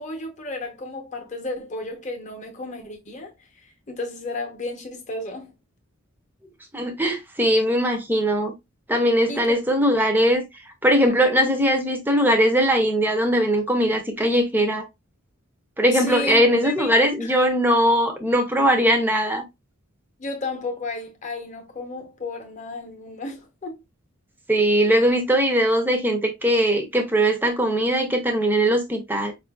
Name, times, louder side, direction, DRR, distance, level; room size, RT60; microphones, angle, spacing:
voice 1, 0.0-3.3 3.9-5.5 9.3-9.5 15.9-16.9 17.2-17.3 20.2-23.8, left 2 dB, 35° left, 0.8 m, -33 dB
voice 2, 6.7-8.5 8.9-10.5 10.8-14.9 15.8-19.4 24.5-29.3, equal, 10° right, 0.5 m, -20 dB
4.8 x 2.5 x 2.2 m
head